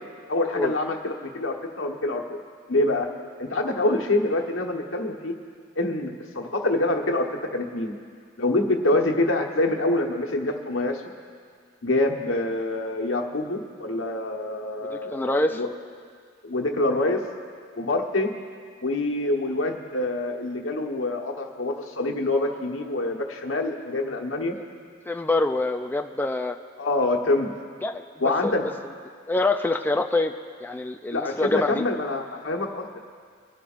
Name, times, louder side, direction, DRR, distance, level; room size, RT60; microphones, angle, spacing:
voice 1, 0.3-2.4 2.7-3.1 3.4-5.4 5.8-8.0 8.4-11.0 11.8-15.7 16.4-17.2 17.8-18.3 18.8-24.6 26.8-27.5 28.2-28.7 31.1-33.0, left 2 dB, 85° left, 2 dB, 1.3 m, -26 dB
voice 2, 14.8-15.6 24.6-24.7 25.1-26.6 27.8-28.0 28.4-28.5 29.3-30.3 30.6-31.8, left 2 dB, 10° left, 5 dB, 0.3 m, -25 dB
24.5 x 11.5 x 2.6 m, 2.1 s
head